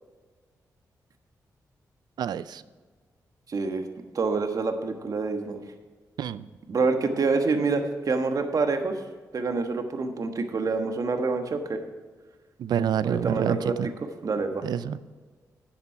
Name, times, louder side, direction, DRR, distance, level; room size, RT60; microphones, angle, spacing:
voice 1, 2.2-2.6 6.2-6.4 12.6-13.9 14.6-15.0, right 9 dB, 80° right, 16 dB, 0.4 m, -28 dB
voice 2, 3.5-3.9 4.1-5.6 6.7-8.9 9.3-11.8 13.0-13.9 14.2-14.7, right 4 dB, 55° right, 6 dB, 1.3 m, -27 dB
10.5 x 7.3 x 5.6 m, 1.4 s
cardioid pair, 60°, 7 cm